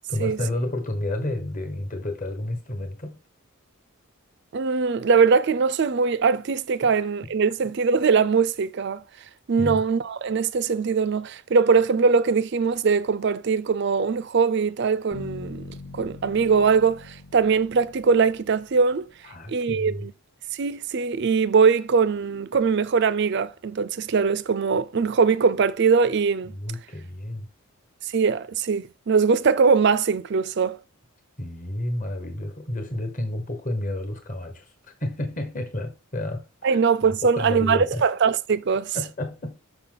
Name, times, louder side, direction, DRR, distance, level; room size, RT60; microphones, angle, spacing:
voice 1, 0.1-3.2 6.8-6.9 9.6-9.8 19.2-20.1 26.5-27.5 31.4-34.7 35.0-36.8 37.2-38.0 38.9-39.6, left 1 dB, 35° left, 1.3 m, -30 dB
voice 2, 4.5-9.0 9.5-15.6 15.9-19.1 19.5-20.1 20.5-26.5 28.0-30.8 36.6-39.0, right 5 dB, 50° right, 0.4 m, -21 dB
Bass guitar, 15.1-19.1, left 3 dB, 80° left, 1.7 m, -42 dB
6.0 x 5.8 x 3.9 m
head